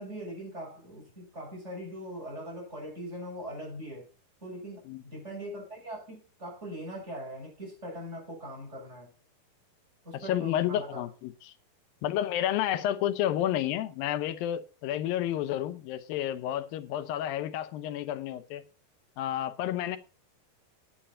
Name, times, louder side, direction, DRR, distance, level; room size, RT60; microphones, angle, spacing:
voice 1, 0.0-4.1 4.4-9.1 10.0-11.0, equal, 15° right, 6.8 m, -41 dB
voice 2, 10.1-11.5 12.0-18.6 19.2-20.0, left 12 dB, 80° left, 2.6 m, -30 dB
10.0 x 8.8 x 5.5 m
omnidirectional pair, 4.1 m